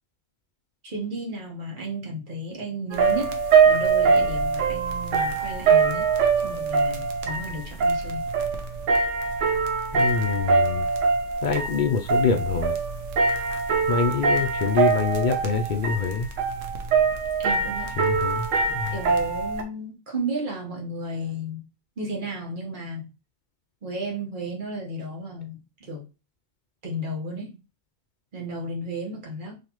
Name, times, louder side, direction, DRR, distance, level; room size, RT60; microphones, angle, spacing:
voice 1, 0.8-6.1 6.4-8.3 17.4-18.0 18.9-21.6 22.0-23.1 23.8-26.1 26.8-27.6 28.3-29.6, right 1 dB, 45° right, 1.2 m, -33 dB
sound 1, 2.9-19.6, right 5 dB, 90° right, 1.1 m, -23 dB
voice 2, 9.9-10.8 11.4-12.8 13.9-16.3 18.0-19.0, left 6 dB, 60° left, 0.5 m, -25 dB
4.0 x 2.9 x 3.0 m
omnidirectional pair, 1.3 m